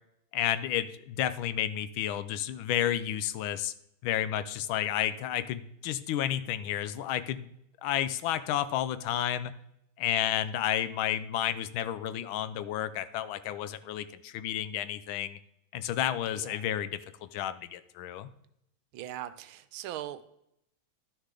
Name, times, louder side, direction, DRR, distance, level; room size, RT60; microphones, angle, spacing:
voice 1, 0.3-3.7 4.0-7.4 7.8-9.5 10.0-15.4 15.7-17.0 17.3-18.3, left 11 dB, 80° left, 14 dB, 1.3 m, -31 dB
voice 2, 16.4-16.7 18.9-20.2, right 13 dB, 80° right, 13 dB, 1.4 m, -40 dB
11.0 x 6.6 x 3.7 m, 0.77 s
omnidirectional pair, 2.3 m